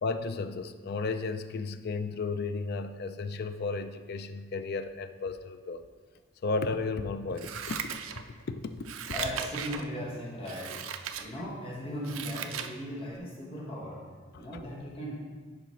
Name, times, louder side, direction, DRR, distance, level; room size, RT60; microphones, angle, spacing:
voice 1, 0.0-5.8 6.4-7.8 8.5-8.9 14.3-14.5, left 3 dB, 50° left, 10 dB, 0.4 m, -33 dB
Scissors, 7.4-8.5 8.8-9.9 10.4-11.3 11.7-12.7 13.1-13.2, right 8 dB, 80° right, 0.4 m, -37 dB
voice 2, 9.1-10.8 11.2-14.1 14.3-15.2, equal, 30° left, -4 dB, 1.1 m, -37 dB
10.5 x 4.7 x 3.1 m, 1.5 s
head